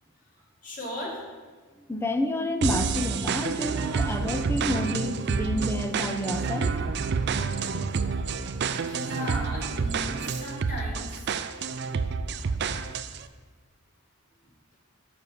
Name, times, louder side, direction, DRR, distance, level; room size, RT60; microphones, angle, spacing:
voice 1, 0.6-1.3 8.8-11.3, left 1 dB, 40° left, -3 dB, 2.1 m, -37 dB
voice 2, 1.9-6.7, left 1 dB, 10° left, 6 dB, 0.6 m, -29 dB
sound 1, 2.6-13.2, right 5 dB, 50° right, 0.4 m, -29 dB
7.2 x 6.1 x 6.7 m, 1.4 s
head